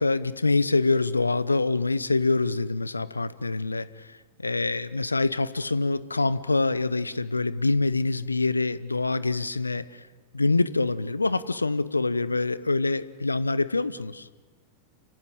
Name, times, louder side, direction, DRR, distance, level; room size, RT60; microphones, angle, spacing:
voice 1, 0.0-10.0 10.3-14.3, left 3 dB, 80° left, 17 dB, 0.8 m, -25 dB
30.0 x 16.0 x 9.0 m, 1.4 s
figure-of-eight pair, 90°, 0 cm